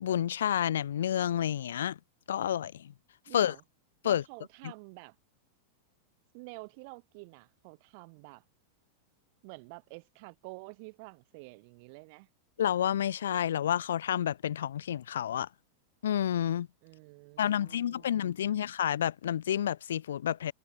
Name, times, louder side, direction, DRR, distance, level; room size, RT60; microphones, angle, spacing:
voice 1, 0.0-2.0 2.3-2.9 3.3-3.6 4.0-4.2 12.6-15.5 16.0-16.7 17.4-20.5, left 10 dB, 75° left, 0.5 m, -29 dB
voice 2, 3.3-3.6 4.0-5.2 6.3-8.4 9.4-12.3 16.8-18.5, right 32 dB, 55° right, 4.3 m, -49 dB
hypercardioid pair, 100°, 0 cm